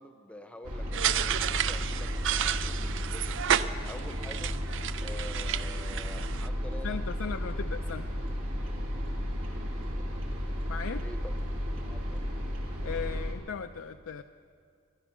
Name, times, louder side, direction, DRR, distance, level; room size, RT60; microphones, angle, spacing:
voice 1, 0.0-3.3 3.8-4.6 5.0-7.3 11.0-11.3 11.7-12.2, left 1 dB, 5° left, 7 dB, 0.8 m, -47 dB
sound 1, 0.6-13.3, equal, 75° right, 2.4 m, -33 dB
sound 2, 0.9-6.5, right 10 dB, 60° right, 0.4 m, -31 dB
voice 2, 6.8-8.1 10.7-11.0 12.8-14.2, left 6 dB, 65° left, 7 dB, 0.4 m, -37 dB
21.5 x 11.0 x 6.0 m, 2.3 s
head